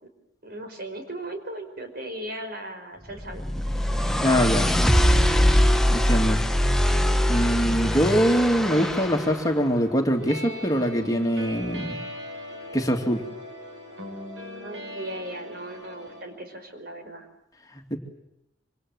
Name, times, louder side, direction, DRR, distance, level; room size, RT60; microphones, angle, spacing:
voice 1, 0.4-3.5 14.6-17.3, right 1 dB, 55° right, 5 dB, 5.3 m, -37 dB
sound 1, 3.2-9.3, equal, ahead, 1.1 m, -22 dB
voice 2, 4.2-4.7 5.9-6.4 7.3-12.0 12.7-13.2 17.7-18.0, equal, 20° left, 3 dB, 2.6 m, -23 dB
sound 2, 8.3-16.2, left 1 dB, 85° right, 6.9 m, -40 dB
26.5 x 26.0 x 7.9 m, 0.84 s
head